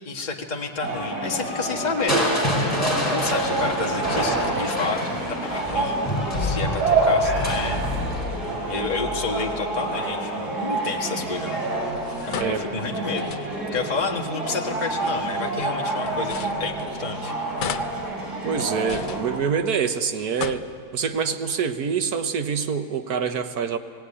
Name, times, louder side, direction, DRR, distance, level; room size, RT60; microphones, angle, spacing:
voice 1, 0.0-5.1 5.4-7.8 8.1-8.2 8.7-11.6 12.3-13.3 13.7-17.3, left 4 dB, 25° left, 1 dB, 1.6 m, -30 dB
sound 1, 0.8-19.4, right 2 dB, 90° right, 4.7 m, -28 dB
Crushing, 2.1-10.0 11.6-12.1 12.6-12.7, equal, 10° left, 5.3 m, -28 dB
sound 2, 11.9-13.8 14.8-17.2 17.6-19.9 20.2-21.2, left 7 dB, 90° left, 0.4 m, -37 dB
voice 2, 12.3-12.7 18.4-20.6 20.9-23.8, right 6 dB, 70° right, 8 dB, 1.5 m, -25 dB
18.5 x 17.0 x 9.8 m, 2.3 s
omnidirectional pair, 1.7 m